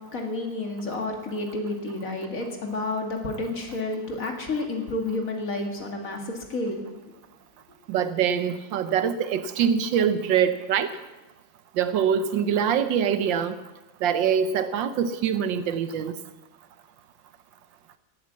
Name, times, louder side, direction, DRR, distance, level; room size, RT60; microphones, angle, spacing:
voice 1, 0.1-6.8, left 2 dB, 45° left, 3 dB, 2.2 m, -30 dB
voice 2, 7.9-11.0 11.8-13.6 14.0-16.1, right 8 dB, 75° right, 12 dB, 1.4 m, -24 dB
18.0 x 8.5 x 7.5 m, 1.1 s
omnidirectional pair, 2.1 m